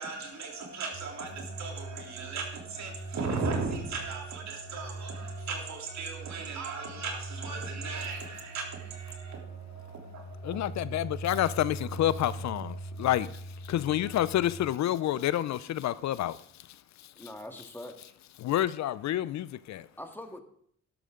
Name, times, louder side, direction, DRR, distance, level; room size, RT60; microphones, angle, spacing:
voice 1, 0.0-10.7 11.0-11.4 12.6-13.1, right 4 dB, 65° right, 3.3 m, -37 dB
sound 1, 0.9-14.5, right 2 dB, 45° right, 4.3 m, -42 dB
voice 2, 10.4-13.3 13.7-16.4 17.2-17.3 18.4-19.9, left 13 dB, 65° left, 0.6 m, -28 dB
voice 3, 17.2-18.1 20.0-20.4, left 1 dB, 5° left, 1.8 m, -43 dB
12.0 x 12.0 x 3.8 m
cardioid pair, 90°, 30 cm